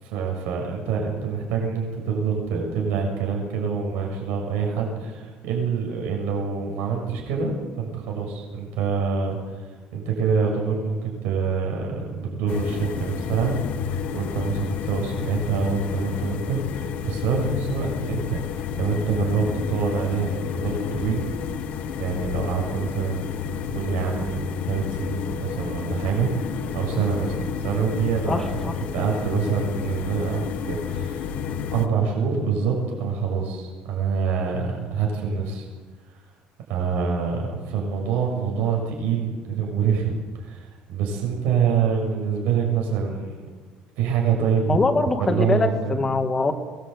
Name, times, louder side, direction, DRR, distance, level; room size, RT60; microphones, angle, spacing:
voice 1, 0.0-13.5 13.9-21.2 22.0-31.3 31.7-35.7 36.7-43.4 44.0-44.8 45.2-46.1, right 6 dB, 75° right, 0 dB, 7.2 m, -26 dB
sound 1, 12.5-31.9, left 7 dB, 50° left, 1.5 m, -30 dB
voice 2, 28.3-28.7 44.7-46.5, left 3 dB, 15° left, 5 dB, 2.1 m, -23 dB
24.5 x 20.5 x 8.5 m, 1.4 s
cardioid pair, 175°, 3 cm